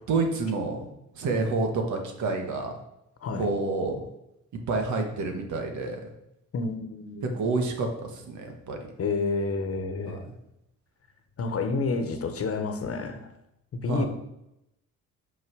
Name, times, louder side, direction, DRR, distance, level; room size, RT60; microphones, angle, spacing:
voice 1, 0.1-0.9 1.1-2.7 3.4-4.0 4.7-6.1 7.3-8.9 10.1-10.2 13.9-14.1, right 3 dB, 75° right, 3 dB, 1.6 m, -28 dB
voice 2, 6.5-7.3 9.0-10.2 11.4-13.3 13.7-14.1, left 3 dB, 50° left, 7 dB, 1.2 m, -29 dB
5.8 x 5.8 x 6.2 m, 0.85 s
cardioid pair, 90°, 30 cm